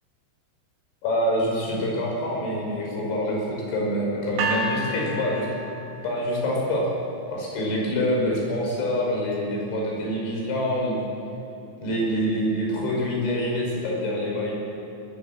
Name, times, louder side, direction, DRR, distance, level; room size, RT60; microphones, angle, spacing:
voice 1, 1.0-5.5 6.0-6.9 7.3-11.1 11.8-14.5, equal, 70° left, -2 dB, 7.9 m, -26 dB
sound 1, 4.4-6.5, right 2 dB, 80° right, 5.1 m, -30 dB
22.5 x 21.5 x 7.1 m, 2.9 s
omnidirectional pair, 5.7 m